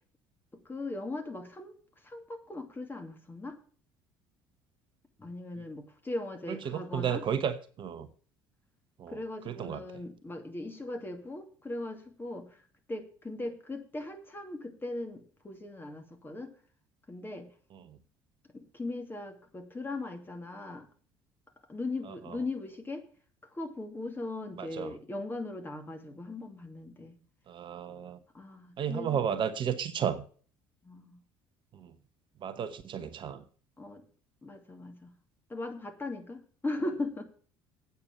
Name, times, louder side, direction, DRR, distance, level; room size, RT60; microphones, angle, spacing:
voice 1, 0.6-3.6 5.2-7.2 9.1-12.6 12.9-16.5 17.1-17.5 18.5-20.9 21.7-23.0 23.5-27.2 28.3-29.2 30.8-31.2 33.8-34.0 34.4-35.1 35.5-37.2, left 2 dB, 20° left, 4 dB, 2.6 m, -39 dB
voice 2, 6.5-8.1 9.0-9.2 9.5-9.8 17.8-18.0 22.3-22.4 24.6-24.9 27.5-28.2 28.8-30.2 31.7-31.9 32.4-33.4, right 8 dB, 45° right, 11 dB, 1.0 m, -33 dB
8.8 x 7.0 x 8.4 m, 0.43 s
hypercardioid pair, 60°, 11 cm